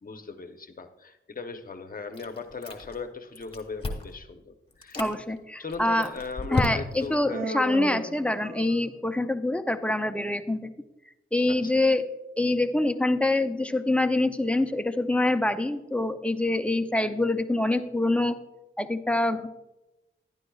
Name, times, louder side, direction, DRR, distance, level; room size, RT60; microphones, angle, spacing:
voice 1, 0.0-5.0 5.6-7.5 11.5-11.8, left 4 dB, 45° left, 6 dB, 0.8 m, -38 dB
Chewing mastication, 2.1-3.1 3.3-4.2 4.7-5.1 5.7-7.1, left 2 dB, 25° left, 1.3 m, -32 dB
voice 2, 5.0-6.1 6.5-10.7 11.3-12.0 12.4-18.4 18.8-19.5, left 2 dB, 5° left, 8 dB, 0.5 m, -25 dB
Human voice, 7.3-9.0, right 1 dB, 80° right, 2.5 m, -35 dB
11.5 x 10.5 x 2.3 m, 0.98 s
wide cardioid pair, 90°, 21 cm